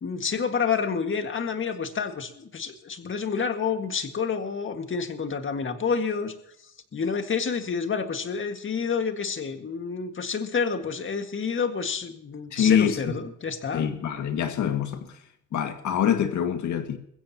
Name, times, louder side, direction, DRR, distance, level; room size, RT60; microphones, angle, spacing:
voice 1, 0.0-6.3 6.9-13.9, left 6 dB, 40° left, 1.8 m, -29 dB
voice 2, 12.5-13.1 13.7-15.0 15.5-17.0, left 9 dB, 75° left, 1.9 m, -25 dB
21.5 x 15.5 x 2.9 m
cardioid pair, 90°, 30 cm